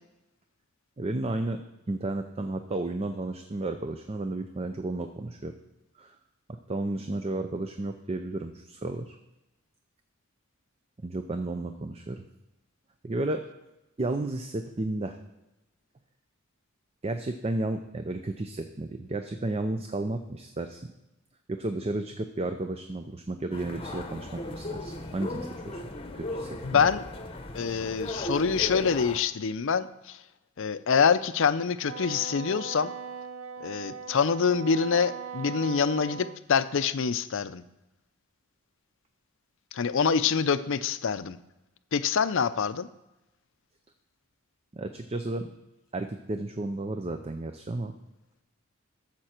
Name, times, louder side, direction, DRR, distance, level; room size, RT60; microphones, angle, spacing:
voice 1, 1.0-5.5 6.0-6.2 6.7-9.2 11.0-12.2 13.0-13.4 14.0-15.2 17.0-20.8 21.5-25.8 26.1-26.9 44.7-45.5 45.9-47.9, right 2 dB, 30° right, 7 dB, 0.5 m, -33 dB
sound 1, 23.5-29.2, left 1 dB, 25° left, 0.9 m, -37 dB
voice 2, 26.6-27.0 27.5-30.2 30.6-32.9 33.6-37.6 39.7-41.4 41.9-42.9, left 6 dB, 60° left, 13 dB, 0.5 m, -25 dB
Wind instrument woodwind instrument, 31.8-36.4, right 6 dB, 85° right, 0.7 m, -40 dB
13.0 x 7.4 x 4.4 m, 0.97 s
head